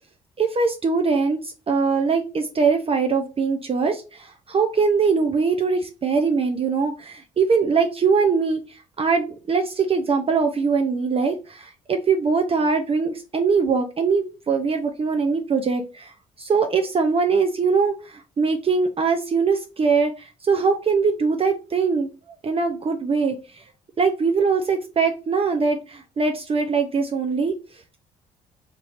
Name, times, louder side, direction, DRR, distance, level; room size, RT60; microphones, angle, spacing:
voice 1, 0.4-16.1 16.4-22.1 22.4-23.6 24.0-27.5, right 5 dB, 35° right, 5 dB, 0.5 m, -22 dB
3.0 x 2.9 x 2.5 m, 0.32 s
hypercardioid pair, 55°, 18 cm